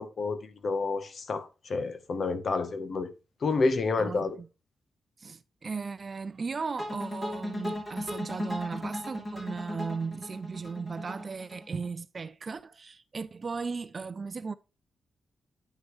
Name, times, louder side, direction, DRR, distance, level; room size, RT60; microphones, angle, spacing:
voice 1, 0.0-3.1 3.4-4.4, left 3 dB, 45° left, 0.9 m, -29 dB
voice 2, 4.0-4.5 5.2-14.6, right 5 dB, 35° right, 0.4 m, -36 dB
sound 1, 6.8-11.9, left 1 dB, 15° left, 2.9 m, -36 dB
9.3 x 6.4 x 3.1 m
wide cardioid pair, 155°, 0 cm